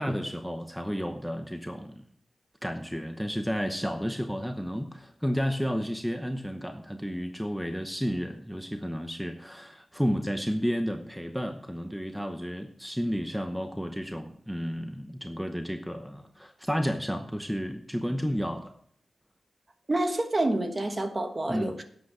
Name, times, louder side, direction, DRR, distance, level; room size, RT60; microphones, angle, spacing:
voice 1, 0.0-2.0 2.6-18.7 21.5-21.7, equal, ahead, 0.8 m, -32 dB
voice 2, 19.9-21.8, right 1 dB, 30° right, 1.4 m, -28 dB
11.5 x 8.0 x 5.0 m
wide cardioid pair, 105°, 0 cm